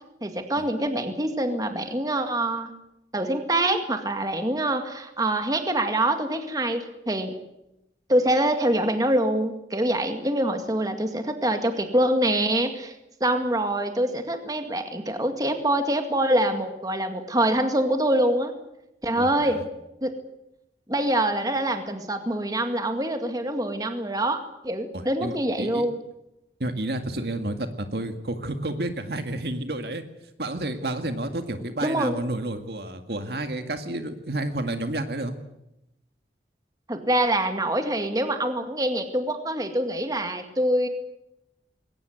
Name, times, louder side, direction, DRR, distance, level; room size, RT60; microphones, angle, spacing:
voice 1, 0.2-2.7 3.1-7.4 8.1-12.9 13.2-18.5 19.0-19.6 20.0-20.1 20.9-26.0 31.8-32.2 36.9-40.9, right 1 dB, 20° right, 6 dB, 2.1 m, -25 dB
voice 2, 19.2-19.6 24.9-25.9 26.6-30.0 30.4-35.4, right 1 dB, 65° right, 7 dB, 2.0 m, -30 dB
21.5 x 18.5 x 9.6 m, 0.88 s
head